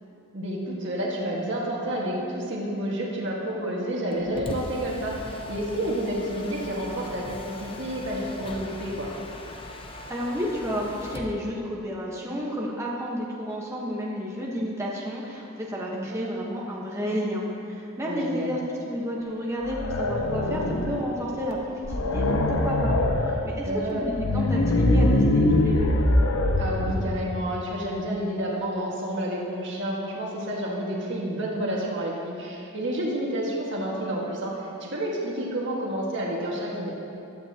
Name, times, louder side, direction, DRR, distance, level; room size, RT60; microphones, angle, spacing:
voice 1, 0.3-9.1 15.9-16.6 18.0-18.5 23.7-24.1 26.6-36.9, right 1 dB, 55° right, -4 dB, 1.9 m, -30 dB
Mechanisms, 4.1-11.4, left 1 dB, 25° left, 0.7 m, -40 dB
voice 2, 10.1-18.6 18.9-25.9, equal, 15° right, -4 dB, 1.3 m, -31 dB
sound 1, 19.6-21.2 21.5-21.6 21.8-23.4 24.0-27.2, left 1 dB, 80° left, 0.9 m, -23 dB
16.0 x 12.0 x 3.0 m, 2.8 s
head